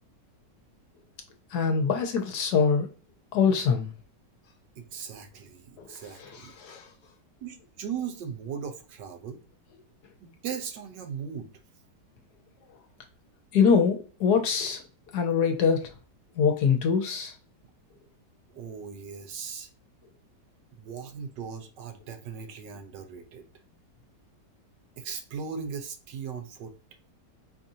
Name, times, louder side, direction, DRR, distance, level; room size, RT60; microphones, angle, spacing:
voice 1, 1.5-2.9 3.3-3.9 6.2-6.9 13.5-14.8 15.1-15.9 16.4-17.3, left 6 dB, 70° left, 1.2 m, -24 dB
voice 2, 4.8-6.5 7.4-9.4 10.2-11.5 18.5-19.7 20.8-23.4 25.0-26.7, right 7 dB, 80° right, 1.4 m, -38 dB
4.9 x 2.6 x 2.7 m
omnidirectional pair, 1.9 m